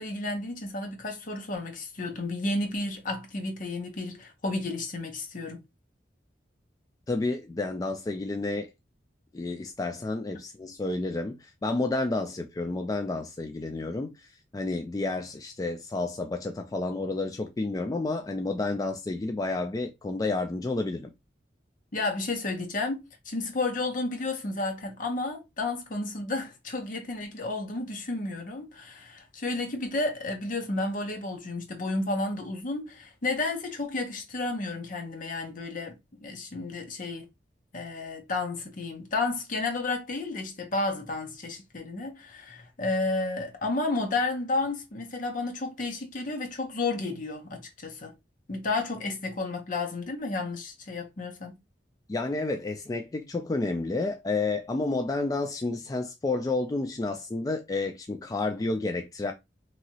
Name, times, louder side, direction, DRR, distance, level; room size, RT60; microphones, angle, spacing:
voice 1, 0.0-5.6 21.9-37.3 37.7-48.1 48.5-51.6, left 2 dB, 50° left, 0.8 m, -32 dB
voice 2, 7.1-8.7 9.3-14.3 14.5-21.1 52.1-59.3, left 2 dB, 20° left, 0.3 m, -30 dB
2.9 x 2.7 x 2.7 m
head